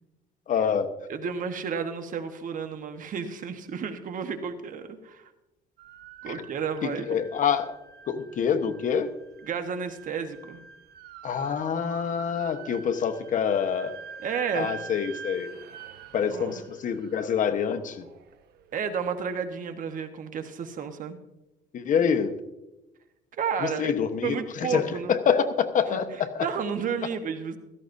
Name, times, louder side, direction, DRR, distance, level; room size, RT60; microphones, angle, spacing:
voice 1, 0.5-0.9 6.3-6.4 6.8-7.7 8.1-9.1 11.2-14.0 14.5-15.5 16.1-18.1 21.7-22.4 23.6-26.5, left 7 dB, 50° left, 7 dB, 1.1 m, -26 dB
voice 2, 1.1-5.2 6.2-7.2 9.4-10.6 14.2-14.8 16.2-16.6 18.7-21.2 23.4-24.0 24.2-25.1 25.9-26.0 26.4-27.6, right 6 dB, 50° right, 8 dB, 1.2 m, -32 dB
sound 1, 5.8-18.8, right 6 dB, 70° right, 1.3 m, -45 dB
16.5 x 14.5 x 2.7 m, 0.97 s
cardioid pair, 110°, 17 cm